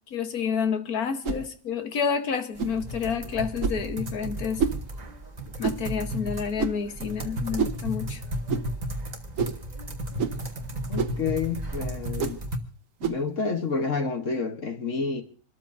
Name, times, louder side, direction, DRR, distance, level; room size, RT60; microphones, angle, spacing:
voice 1, 0.1-4.7 5.6-8.2, left 6 dB, 80° left, 1.7 m, -29 dB
sound 1, 1.2-1.5 2.6-2.8 3.6-3.9 4.6-4.8 5.6-5.9 6.6-6.9 7.6-7.8 8.5-8.7 9.4-9.6 10.2-10.4 11.0-11.2 12.2-12.4 13.0-13.2, right 6 dB, 65° right, 1.3 m, -28 dB
sound 2, 2.5-12.6, equal, 30° right, 1.4 m, -34 dB
voice 2, 10.9-12.4 13.0-15.2, left 4 dB, 60° left, 1.5 m, -29 dB
27.5 x 13.5 x 2.6 m
omnidirectional pair, 1.5 m